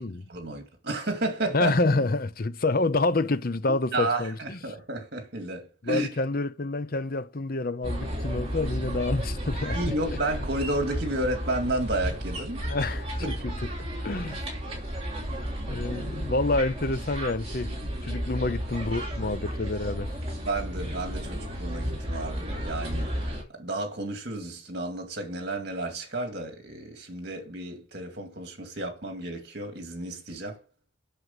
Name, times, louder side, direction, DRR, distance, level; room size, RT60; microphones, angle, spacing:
voice 1, 0.3-1.7 3.9-6.1 9.7-12.7 13.2-13.4 20.4-30.6, right 2 dB, 55° right, 2.2 m, -32 dB
voice 2, 1.5-4.6 5.8-9.8 12.6-14.5 15.7-17.8 18.0-20.1, left 2 dB, 45° left, 0.7 m, -28 dB
sound 1, 7.8-23.4, equal, 30° right, 3.1 m, -33 dB
8.1 x 6.5 x 7.3 m
head